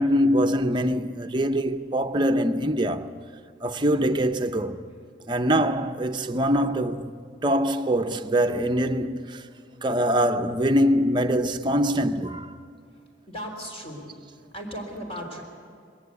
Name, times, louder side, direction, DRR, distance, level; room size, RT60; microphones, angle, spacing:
voice 1, 0.0-3.1 3.6-4.8 5.3-7.1 7.4-9.4 9.8-12.5, equal, 25° right, 0.7 m, -23 dB
voice 2, 13.3-14.1 14.5-15.4, equal, 30° left, 3.7 m, -36 dB
21.0 x 18.0 x 8.3 m
head